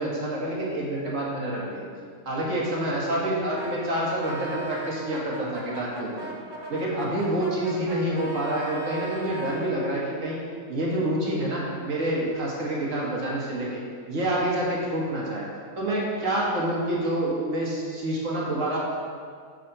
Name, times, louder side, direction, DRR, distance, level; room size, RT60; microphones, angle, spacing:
voice 1, 0.0-1.8 2.3-6.3 6.7-10.4 10.7-13.8 14.1-15.5 15.8-18.8, right 1 dB, 60° right, -4 dB, 2.0 m, -27 dB
Brass instrument, 3.5-9.7, right 2 dB, 20° right, 1.1 m, -38 dB
8.0 x 5.5 x 5.6 m, 2.1 s
omnidirectional pair, 1.5 m